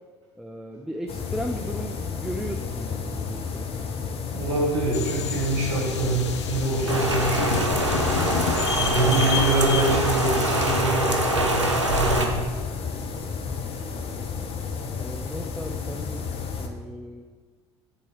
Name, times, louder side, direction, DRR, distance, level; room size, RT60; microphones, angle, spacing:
voice 1, 0.4-3.9 13.2-13.6 15.0-16.2 16.6-17.2, equal, ahead, 4 dB, 0.5 m, -36 dB
sound 1, 1.1-16.7, left 5 dB, 40° left, 1.0 m, -32 dB
voice 2, 4.3-8.4 8.8-12.5, right 2 dB, 70° right, -4 dB, 2.1 m, -25 dB
sound 2, 4.9-10.8, left 7 dB, 75° left, 0.6 m, -30 dB
Rain, 6.9-12.3, right 1 dB, 90° right, 0.8 m, -24 dB
6.5 x 4.1 x 6.5 m, 1.4 s
figure-of-eight pair, 60°, 15 cm